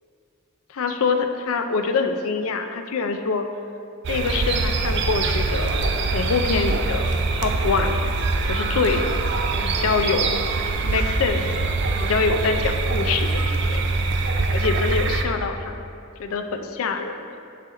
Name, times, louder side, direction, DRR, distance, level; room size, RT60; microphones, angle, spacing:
voice 1, 0.7-3.5 4.1-5.8 6.1-7.0 7.3-8.0 8.5-9.1 9.6-10.3 10.8-13.8 14.5-15.7 16.2-17.3, left 4 dB, 80° left, 7 dB, 0.4 m, -25 dB
sound 1, 4.0-15.2, right 3 dB, 55° right, 0.4 m, -23 dB
6.4 x 4.1 x 3.7 m, 2.5 s
head